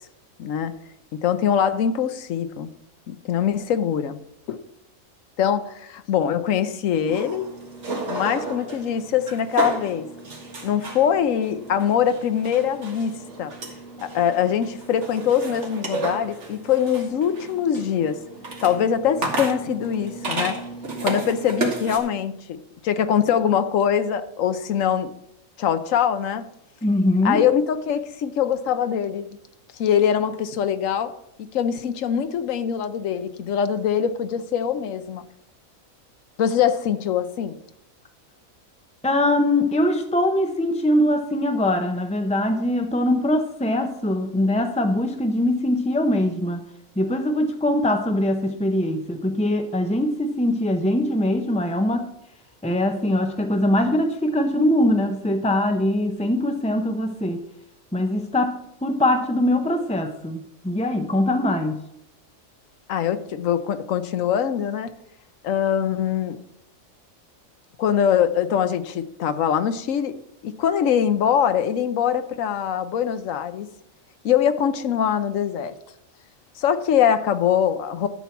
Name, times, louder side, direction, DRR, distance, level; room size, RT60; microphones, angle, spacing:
voice 1, 0.4-0.7 1.2-2.7 3.1-4.2 4.5-4.6 5.4-7.5 8.1-10.1 10.6-13.5 14.0-18.2 18.6-20.6 21.0-22.3 22.8-25.1 25.6-26.5 27.2-29.3 29.8-31.1 31.4-35.3 36.4-37.6 62.9-64.9 65.4-66.4 67.8-70.1 70.4-73.7 74.2-75.7 76.6-78.1, left 8 dB, 70° left, 1.1 m, -23 dB
sound 1, 7.1-22.0, right 2 dB, 55° right, 2.0 m, -32 dB
voice 2, 26.8-27.4 39.0-46.6 47.0-52.1 52.6-57.4 57.9-61.8, left 1 dB, 10° left, 0.3 m, -22 dB
12.5 x 4.5 x 7.1 m
omnidirectional pair, 1.4 m